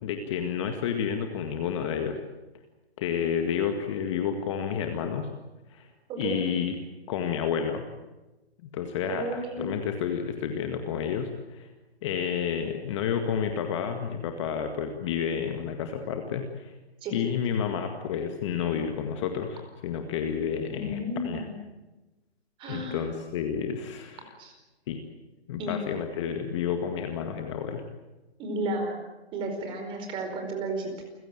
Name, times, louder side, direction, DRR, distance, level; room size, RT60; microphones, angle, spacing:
voice 1, 0.0-2.2 3.0-5.3 5.7-5.9 6.2-6.8 7.1-7.9 8.7-11.7 12.0-16.7 17.1-21.5 22.7-24.4 24.9-25.0 25.5-27.8, left 7 dB, 30° left, 6 dB, 1.9 m, -30 dB
voice 2, 9.1-9.7 17.0-17.1 20.7-21.5 22.6-23.0 24.4-24.5 25.6-25.8 28.4-29.0 29.3-31.0, right 1 dB, 15° right, 4 dB, 4.7 m, -32 dB
29.0 x 16.0 x 9.1 m, 1.1 s
hypercardioid pair, 155°, 32 cm